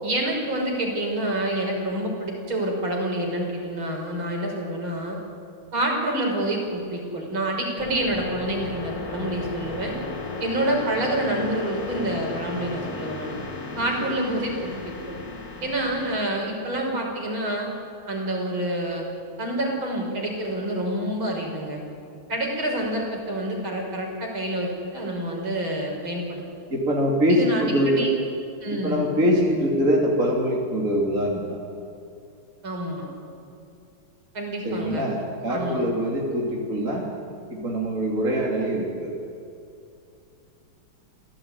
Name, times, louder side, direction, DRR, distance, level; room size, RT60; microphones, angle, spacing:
voice 1, 0.0-5.2 5.7-9.9 10.4-13.3 13.8-14.7 15.1-15.2 15.6-17.7 18.1-19.0 19.4-21.8 22.3-26.4 27.3-28.2 28.6-29.0 32.6-33.1 34.3-35.0 35.5-35.8, right 1 dB, 65° right, 0 dB, 6.1 m, -27 dB
sound 1, 7.8-16.2, left 3 dB, 45° left, 2.7 m, -35 dB
voice 2, 26.7-28.1 28.7-31.6 34.6-37.1 37.5-39.2, equal, 35° right, -2 dB, 3.5 m, -23 dB
27.5 x 17.5 x 9.8 m, 2.6 s
omnidirectional pair, 2.4 m